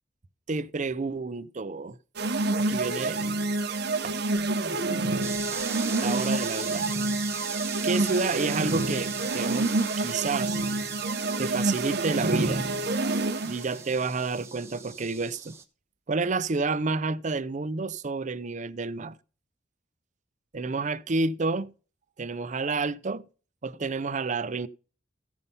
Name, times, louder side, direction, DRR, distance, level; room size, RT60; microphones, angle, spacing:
voice 1, 0.5-2.0 2.6-3.2 4.0-4.2 6.0-6.9 7.8-9.7 10.0-10.6 11.4-12.7 13.4-15.6 16.1-19.1 20.5-21.7 22.2-23.3 23.6-24.7, right 3 dB, 40° right, 0.6 m, -29 dB
sound 1, 2.1-13.7, right 2 dB, 60° right, 1.1 m, -28 dB
sound 2, 5.2-15.6, right 5 dB, 15° right, 1.2 m, -40 dB
15.0 x 5.5 x 5.5 m
head